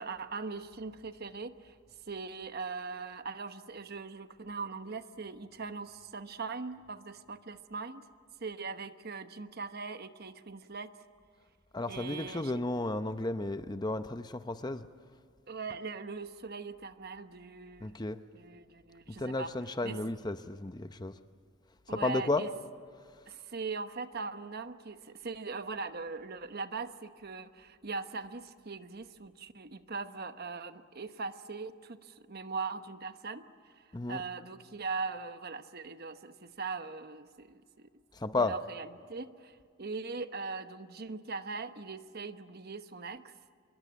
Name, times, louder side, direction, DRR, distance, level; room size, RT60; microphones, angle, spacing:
voice 1, 0.0-1.7 2.1-8.1 8.4-10.9 11.9-12.6 15.5-17.9 18.3-19.5 19.8-20.0 21.9-22.5 23.3-33.7 34.1-37.9 38.4-43.3, right 4 dB, 50° right, 10 dB, 1.0 m, -40 dB
voice 2, 11.7-14.9 17.8-18.2 19.2-21.1 21.9-22.5 33.9-34.2 38.2-38.6, left 2 dB, 20° left, 10 dB, 0.7 m, -33 dB
25.5 x 22.5 x 8.6 m, 2.1 s
head